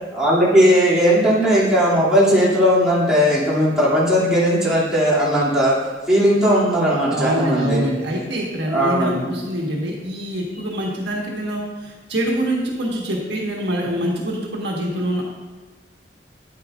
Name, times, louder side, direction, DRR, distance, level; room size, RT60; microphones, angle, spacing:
voice 1, 0.1-5.7 6.1-7.8 8.6-9.3, equal, 5° right, -10 dB, 2.5 m, -17 dB
voice 2, 7.1-15.3, right 1 dB, 70° right, -2 dB, 1.4 m, -25 dB
10.0 x 8.7 x 2.5 m, 1.3 s
head